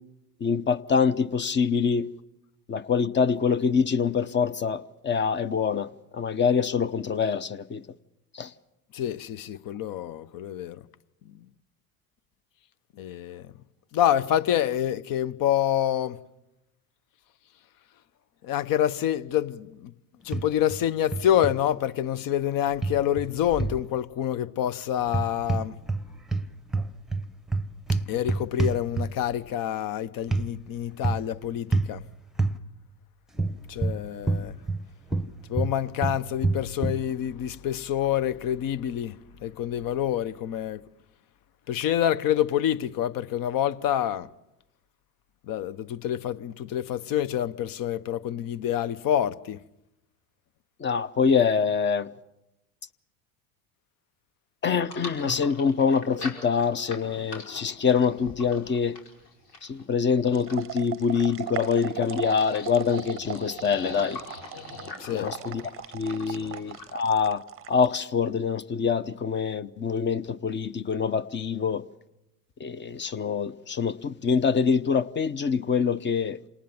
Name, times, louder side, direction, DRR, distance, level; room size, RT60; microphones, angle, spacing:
voice 1, 0.4-2.1 2.7-7.8 8.3-8.5 50.8-52.1 54.6-59.0 59.6-64.2 65.1-65.6 65.9-67.4 67.7-71.8 72.6-76.4, left 6 dB, 25° left, 0.8 m, -25 dB
voice 2, 8.9-10.8 13.0-13.5 13.9-16.2 18.4-19.9 20.2-25.8 28.1-32.0 33.7-34.5 35.5-39.2 39.4-40.8 41.7-44.3 45.5-49.6 65.0-65.3 66.3-66.5, left 11 dB, 45° left, 1.0 m, -27 dB
sound 1, 20.3-20.8 21.1-21.6 22.8-23.8 25.0-26.0 26.3-29.3 30.3-30.5 31.0-31.3 31.7-31.9 32.4-32.6 33.4-34.8 35.1-37.0, right 3 dB, ahead, 1.0 m, -27 dB
sound 2, 54.8-66.9, left 3 dB, 90° left, 5.5 m, -42 dB
sound 3, 60.3-68.0, right 14 dB, 30° right, 0.8 m, -38 dB
27.5 x 19.0 x 7.2 m
hypercardioid pair, 95°, 46 cm